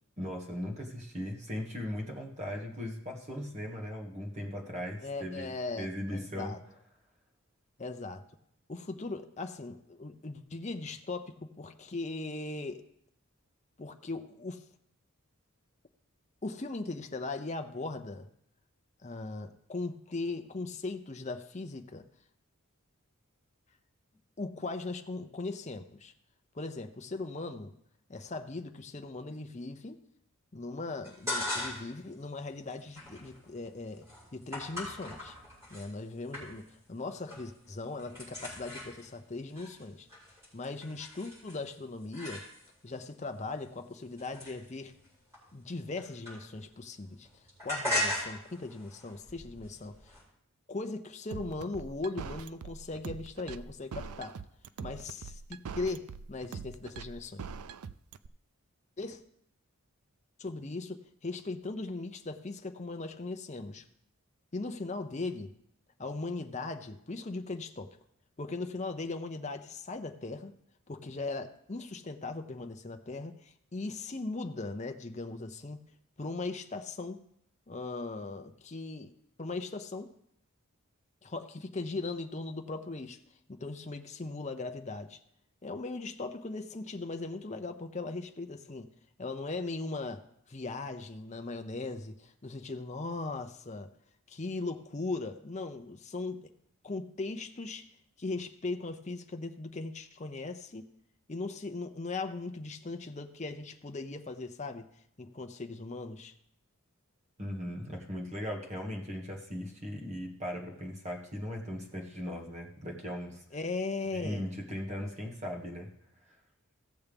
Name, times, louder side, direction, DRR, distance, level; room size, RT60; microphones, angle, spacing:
voice 1, 0.2-5.5 5.8-6.5 107.4-113.4 114.1-115.9, equal, 30° right, 0 dB, 1.6 m, -38 dB
voice 2, 5.0-6.6 7.8-8.2 8.7-12.8 13.8-14.6 16.4-18.3 19.0-22.0 24.4-26.1 26.5-27.7 28.1-30.0 30.5-34.0 34.3-35.4 35.7-40.1 40.5-42.4 42.8-44.9 45.5-47.3 47.6-50.1 50.7-54.4 54.8-57.4 59.0-59.2 60.4-63.8 64.5-65.5 66.0-68.0 68.4-70.5 70.9-75.8 76.2-77.2 77.7-79.1 79.4-80.1 81.2-83.2 83.5-85.2 85.6-88.9 89.2-93.9 94.3-96.5 96.8-97.9 98.2-100.9 101.3-104.9 105.2-106.3 113.5-114.5, left 3 dB, 30° left, 6 dB, 0.6 m, -39 dB
sound 1, 31.0-32.0 32.4-35.9 36.3-36.8 37.1-37.6 37.8-42.9 43.5-46.8 47.0-50.2, left 1 dB, 15° right, 4.9 m, -39 dB
sound 2, 51.3-58.3, right 5 dB, 85° right, 0.4 m, -42 dB
16.5 x 7.0 x 3.5 m, 0.71 s
head